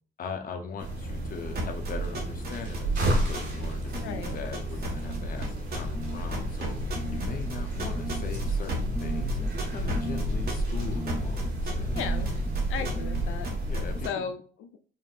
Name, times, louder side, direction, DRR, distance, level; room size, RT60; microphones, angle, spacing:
voice 1, 0.2-12.0 12.8-13.0 13.7-14.2, left 5 dB, 45° left, 3 dB, 0.7 m, -40 dB
sound 1, 0.8-14.1, right 2 dB, 70° right, 1.7 m, -32 dB
sound 2, 1.2-1.5 1.7-2.5 2.7-3.5 3.7-14.0, left 2 dB, 15° right, 0.6 m, -35 dB
sound 3, 1.5-3.7 3.9-5.2 5.4-6.1 6.3-13.2 13.4-14.1, right 2 dB, 50° right, 1.4 m, -35 dB
voice 2, 3.9-4.4 11.9-12.3 12.7-13.6 14.0-14.8, left 7 dB, 85° left, 8 dB, 0.4 m, -36 dB
5.1 x 2.7 x 2.4 m, 0.43 s
cardioid pair, 90°, 20 cm